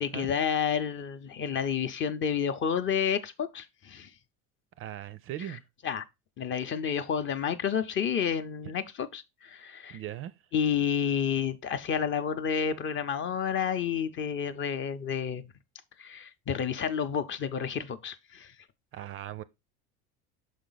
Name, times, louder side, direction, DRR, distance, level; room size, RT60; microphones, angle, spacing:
voice 1, 0.0-4.1 5.8-6.0 6.4-10.0 10.5-15.5 16.0-18.5, left 7 dB, 35° left, 0.6 m, -30 dB
voice 2, 4.8-5.6 9.9-10.4 18.9-19.4, right 12 dB, 40° right, 0.4 m, -38 dB
6.2 x 5.0 x 3.9 m
cardioid pair, 135°, 35 cm